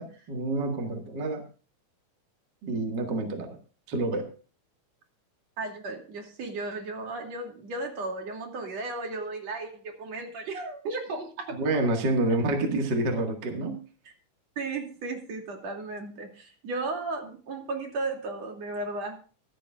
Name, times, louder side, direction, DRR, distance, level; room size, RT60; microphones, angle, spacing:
voice 1, 0.0-1.4 2.6-3.6 3.9-4.3 11.6-13.8, right 2 dB, 40° right, 2 dB, 2.0 m, -28 dB
voice 2, 5.6-11.6 14.6-19.2, right 3 dB, 55° right, 2 dB, 3.6 m, -35 dB
25.0 x 8.5 x 2.4 m, 0.37 s
omnidirectional pair, 3.7 m